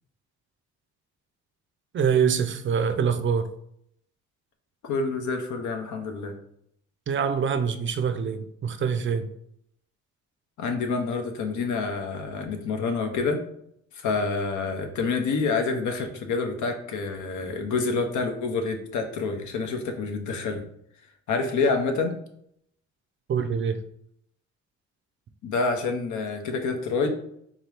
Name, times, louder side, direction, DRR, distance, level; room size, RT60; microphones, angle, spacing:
voice 1, 1.9-3.5 7.1-9.3 23.3-23.8, right 6 dB, 40° right, 0.4 m, -25 dB
voice 2, 4.8-6.3 10.6-13.4 13.9-20.6 21.3-22.1 25.4-27.1, left 4 dB, 75° left, 0.8 m, -27 dB
3.7 x 2.8 x 3.3 m
cardioid pair, 90°, 30 cm